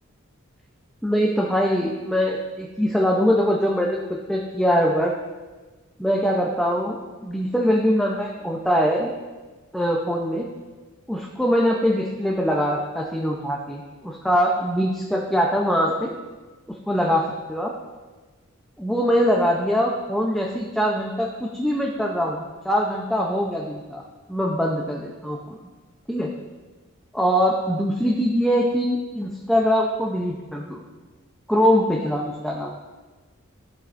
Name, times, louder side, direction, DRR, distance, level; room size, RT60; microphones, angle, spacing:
voice 1, 1.0-4.0 4.3-5.1 6.0-9.1 9.7-10.5 11.1-16.1 16.7-17.7 18.8-24.0 24.3-25.4 26.1-26.3 27.1-30.8 31.5-32.7, equal, ahead, -1 dB, 0.6 m, -22 dB
15.0 x 8.2 x 2.6 m, 1.3 s
head